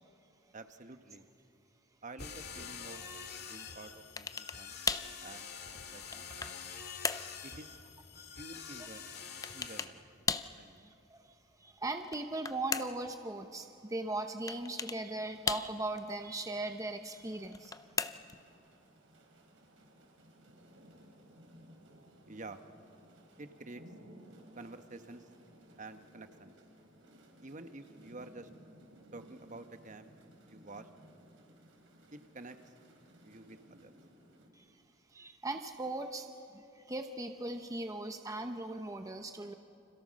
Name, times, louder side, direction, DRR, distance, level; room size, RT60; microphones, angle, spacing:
voice 1, 0.5-1.3 2.0-3.0 3.4-4.8 5.2-5.5 5.9-6.3 7.4-7.7 8.4-9.0 9.5-10.0 10.5-10.8 22.3-22.6 23.4-23.8 24.6-25.3 25.8-26.5 27.4-28.5 29.1-30.1 30.4-30.9 32.1-32.6 33.2-33.9, right 2 dB, 40° right, 9 dB, 1.2 m, -49 dB
sound 1, 2.2-9.8, left 6 dB, 55° left, 2.2 m, -46 dB
sound 2, 4.2-4.6 4.9-5.2 5.8-6.6 7.0-7.3 9.4-10.0 10.3-10.6 12.0-13.1 14.5-15.0 15.5-16.0 17.4-18.4, left 5 dB, 20° left, 0.6 m, -36 dB
voice 2, 6.7-7.5 8.2-8.3 10.8-11.3 11.6-17.7 34.5-34.6 35.1-36.3 36.5-39.5, right 2 dB, 15° right, 6 dB, 0.9 m, -39 dB
sound 3, 15.1-34.5, right 1 dB, 75° right, 4.7 m, -59 dB
30.0 x 26.5 x 6.4 m, 2.8 s
head